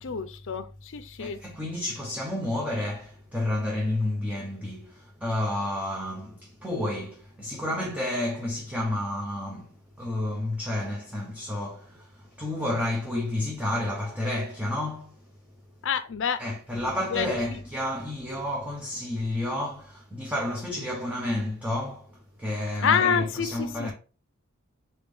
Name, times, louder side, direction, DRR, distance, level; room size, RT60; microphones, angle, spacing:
voice 1, 0.0-1.4 15.8-16.4 16.7-16.9 17.1-17.6 22.8-23.9, left 7 dB, 60° left, 0.5 m, -27 dB
voice 2, 1.2-15.2 16.4-23.9, left 1 dB, 5° right, 0.7 m, -30 dB
4.1 x 3.5 x 3.5 m
head